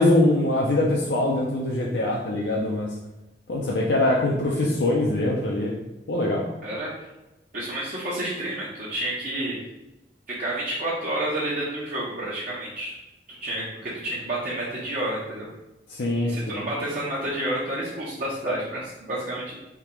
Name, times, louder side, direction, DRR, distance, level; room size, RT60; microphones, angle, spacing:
voice 1, 0.0-2.9 3.5-5.7 6.1-6.4 15.9-16.6, left 1 dB, 75° left, -3 dB, 0.6 m, -23 dB
voice 2, 6.6-6.9 7.5-9.5 10.4-12.9 13.3-15.5 16.2-19.5, right 1 dB, 50° right, -8 dB, 1.0 m, -30 dB
3.6 x 2.9 x 4.5 m, 0.99 s
head